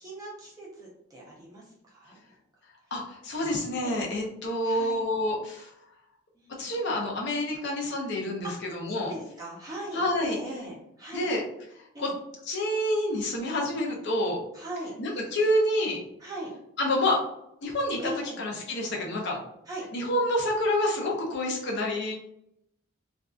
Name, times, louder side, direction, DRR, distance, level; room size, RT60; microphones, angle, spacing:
voice 1, 0.0-2.2 3.8-4.0 4.6-5.0 6.3-6.7 8.4-8.6 9.0-11.3 11.9-12.1 14.5-15.0 16.2-16.5 18.0-18.4 19.7-19.9, right 1 dB, 15° right, -4 dB, 0.6 m, -39 dB
voice 2, 2.9-5.7 6.6-9.1 9.9-10.4 11.1-11.4 12.0-12.1 12.5-14.4 15.0-16.0 16.8-17.2 17.6-18.1 18.4-19.4 19.9-22.1, left 1 dB, 50° left, -1 dB, 0.6 m, -28 dB
2.6 x 2.3 x 2.3 m, 0.78 s
head